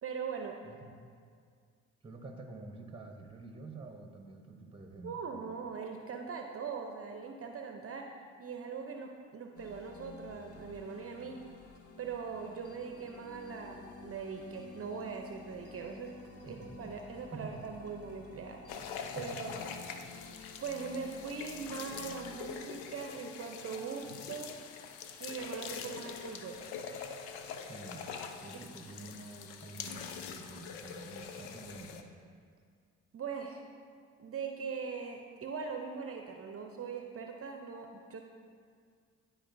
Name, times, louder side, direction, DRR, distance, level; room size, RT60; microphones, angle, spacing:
voice 1, 0.0-0.6 5.0-8.1 8.4-11.4 12.0-16.1 16.4-18.6 19.1-19.6 20.6-24.6 25.2-26.6 28.5-28.7 33.1-33.6 34.2-38.2, right 5 dB, 40° right, 3 dB, 0.7 m, -41 dB
voice 2, 0.6-0.9 2.0-5.2 16.4-16.9 17.3-17.6 19.1-19.4 20.3-20.4 27.7-28.1 28.4-32.1, right 3 dB, 15° right, 4 dB, 0.9 m, -48 dB
sound 1, 9.5-22.6, left 4 dB, 45° left, 0.9 m, -52 dB
sound 2, 18.7-32.0, left 6 dB, 85° left, 0.5 m, -44 dB
11.5 x 4.4 x 2.6 m, 2.1 s
hypercardioid pair, 55°, 35 cm